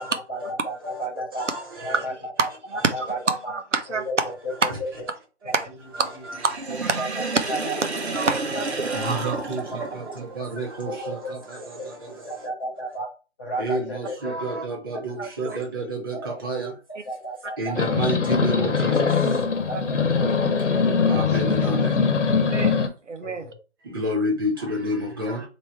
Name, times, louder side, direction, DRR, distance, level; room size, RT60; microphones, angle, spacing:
voice 1, 0.3-1.5 1.8-2.1 2.4-2.5 2.9-3.5 3.9-5.1 5.4-5.5 6.2-6.3 7.0-7.2 7.5-7.8 8.1-8.2 9.7-9.8 10.0-10.1 10.8-11.1 11.6-11.9 12.2-13.1 13.4-14.6 14.9-15.1 15.9-16.3 16.5-17.7 18.5-19.2 19.7-19.8 20.2-21.8 23.2-23.5, right 1 dB, 10° left, 1.0 m, -34 dB
voice 2, 1.4-2.0 5.9-6.4 6.8-7.1 8.2-12.3 13.6-16.7 17.6-19.1 21.1-22.0 23.9-25.5, right 1 dB, 20° right, 0.9 m, -30 dB
voice 3, 2.4-3.1 3.5-4.0 4.6-4.7 5.4-5.5 6.4-6.5 6.9-7.0 8.1-8.7 15.2-15.6 19.7-19.8 22.4-23.5, right 4 dB, 90° right, 1.0 m, -27 dB
Sink (filling or washing), 6.3-10.3, right 3 dB, 65° right, 1.1 m, -30 dB
sound 1, 17.7-22.9, left 5 dB, 85° left, 1.0 m, -22 dB
3.4 x 3.0 x 4.4 m
figure-of-eight pair, 165°, 35 cm